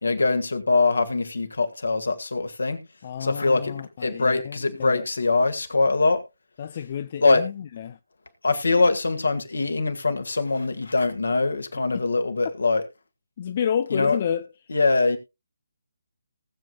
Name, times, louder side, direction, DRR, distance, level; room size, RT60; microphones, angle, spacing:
voice 1, 0.0-2.8 3.2-6.2 7.2-7.4 8.4-12.8 13.9-14.2 14.7-15.2, left 3 dB, 65° left, 1.9 m, -23 dB
voice 2, 3.0-5.0 6.6-8.0 11.9-12.0 13.4-14.5, left 8 dB, 35° left, 0.5 m, -30 dB
19.0 x 7.5 x 2.3 m
figure-of-eight pair, 145°, 0 cm